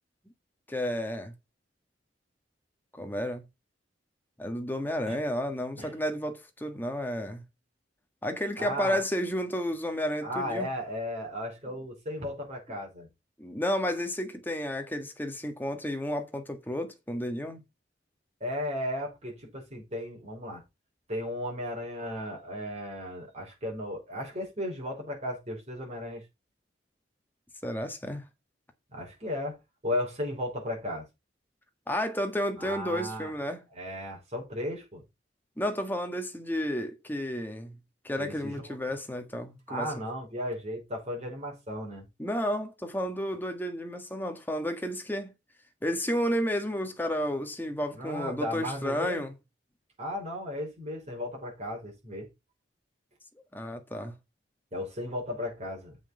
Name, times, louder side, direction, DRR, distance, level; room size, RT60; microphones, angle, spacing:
voice 1, 0.7-1.3 2.9-3.4 4.4-7.4 8.2-10.7 13.4-17.6 27.6-28.2 31.9-33.6 35.6-37.7 38.0-39.9 42.2-45.3 45.8-49.3 53.5-54.1, equal, 10° left, 1.6 m, -32 dB
voice 2, 8.6-9.0 10.2-13.1 18.4-20.6 21.1-26.2 28.9-29.6 29.8-31.1 32.6-33.3 33.7-35.0 38.2-38.8 39.7-42.1 47.9-49.2 50.0-52.3 54.7-56.0, left 1 dB, 40° right, 5.3 m, -35 dB
7.6 x 5.7 x 5.6 m
head